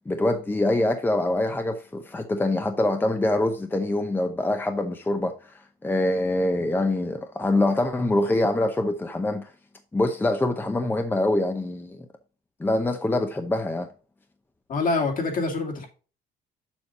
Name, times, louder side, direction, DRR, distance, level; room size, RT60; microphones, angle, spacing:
voice 1, 0.1-9.5 9.9-12.1 12.6-13.9, left 1 dB, 10° left, 0.7 m, -24 dB
voice 2, 14.7-15.9, left 3 dB, 50° left, 2.7 m, -25 dB
7.2 x 6.4 x 2.8 m
cardioid pair, 110°, 17 cm